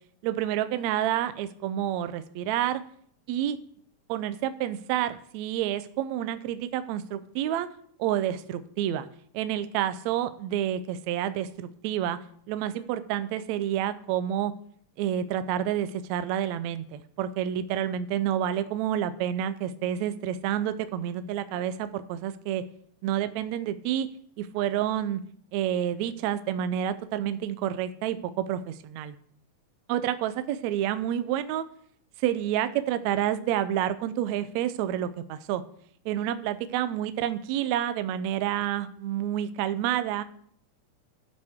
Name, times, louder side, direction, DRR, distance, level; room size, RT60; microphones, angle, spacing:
voice 1, 0.2-2.8 3.3-3.6 4.1-7.7 8.0-9.1 9.3-12.2 12.5-14.5 15.0-22.6 23.0-24.1 24.4-25.2 25.5-28.6 29.0-29.1 29.9-31.6 32.2-35.6 36.0-40.2, right 11 dB, 75° right, 12 dB, 1.7 m, -29 dB
15.5 x 9.7 x 3.6 m, 0.63 s
omnidirectional pair, 3.7 m